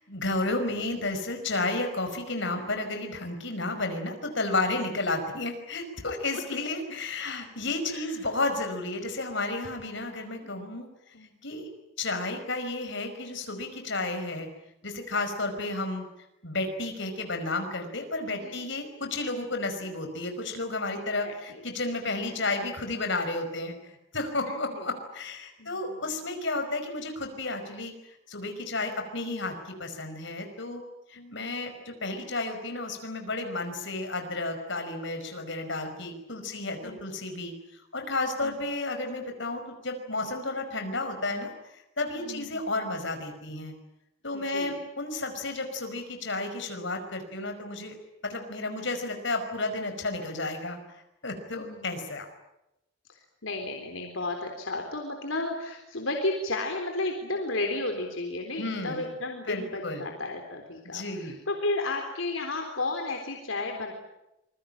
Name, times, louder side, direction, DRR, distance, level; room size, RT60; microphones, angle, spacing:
voice 1, 0.0-10.9 11.4-11.7 12.0-14.5 14.8-16.0 16.4-27.9 28.3-30.8 31.1-37.5 37.9-43.8 44.2-48.0 48.2-50.8 51.2-52.3 58.6-59.1 59.5-60.0 60.9-61.4, left 2 dB, 65° left, 6 dB, 5.3 m, -32 dB
voice 2, 21.2-21.6 22.3-22.5 24.5-24.6 25.6-26.1 31.2-31.3 36.4-36.5 36.8-37.0 38.4-38.6 42.1-42.6 44.3-44.7 51.5-52.0 53.1-63.9, left 2 dB, 80° left, 3 dB, 3.8 m, -33 dB
27.0 x 22.0 x 8.9 m, 0.89 s
head